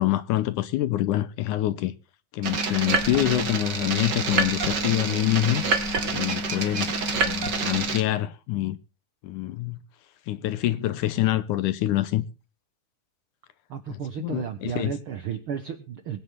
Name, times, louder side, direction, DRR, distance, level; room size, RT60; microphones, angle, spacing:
voice 1, 0.0-1.9 2.3-5.6 6.1-6.9 7.2-8.8 9.2-9.8 10.3-12.3 13.9-14.9, left 14 dB, 75° left, 2.1 m, -26 dB
sound 1, 2.4-8.0, right 3 dB, 40° right, 2.0 m, -27 dB
voice 2, 13.7-16.2, right 8 dB, 70° right, 1.2 m, -33 dB
21.5 x 10.0 x 3.7 m
omnidirectional pair, 4.0 m